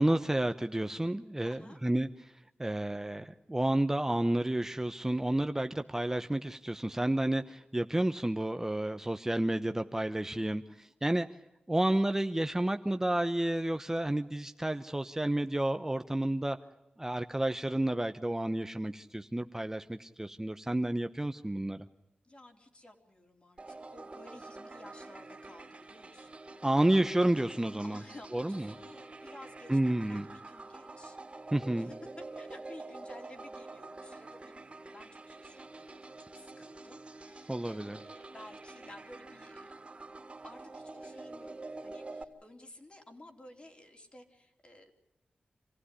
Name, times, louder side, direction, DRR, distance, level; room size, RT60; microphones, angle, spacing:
voice 1, 0.0-2.3 2.6-11.3 11.7-16.6 17.0-21.8 26.6-28.0 28.3-28.7 29.7-30.2 31.5-31.9 37.5-38.0, right 1 dB, 15° right, 8 dB, 0.9 m, -30 dB
voice 2, 1.4-1.8 22.2-26.9 27.8-31.9 32.4-39.7 40.4-44.9, left 1 dB, 35° left, 3 dB, 3.9 m, -54 dB
sound 1, 23.6-42.2, right 2 dB, 35° right, 3.2 m, -47 dB
27.0 x 16.0 x 10.0 m, 0.96 s
cardioid pair, 70°, 3 cm